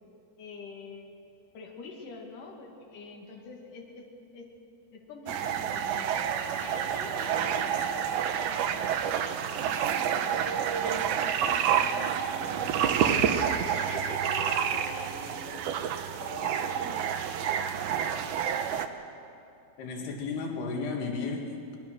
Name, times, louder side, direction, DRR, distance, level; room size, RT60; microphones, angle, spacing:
voice 1, 0.4-1.1 1.5-4.1 4.3-4.5 4.9-8.0 8.4-10.6 10.8-15.6 16.2-17.2, left 4 dB, 60° left, 0 dB, 3.8 m, -45 dB
sound 1, 5.3-18.9, right 8 dB, 75° right, 1.9 m, -28 dB
voice 2, 19.8-21.8, left 4 dB, 90° left, 2 dB, 3.9 m, -33 dB
23.5 x 20.5 x 6.3 m, 2.6 s
omnidirectional pair, 4.5 m